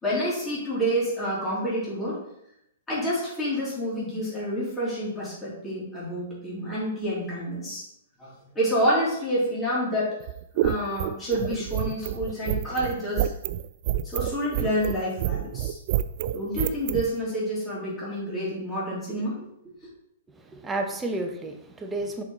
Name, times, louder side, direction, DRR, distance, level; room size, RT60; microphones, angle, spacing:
voice 1, 0.0-2.2 2.9-7.8 8.2-10.2 10.6-13.3 14.0-15.8 16.3-19.4, equal, 15° left, -8 dB, 2.8 m, -28 dB
sound 1, 10.2-17.1, right 13 dB, 45° right, 0.3 m, -28 dB
voice 2, 20.3-22.2, right 2 dB, 10° right, 4 dB, 0.8 m, -31 dB
6.0 x 5.4 x 4.0 m, 0.78 s
hypercardioid pair, 145°, 0 cm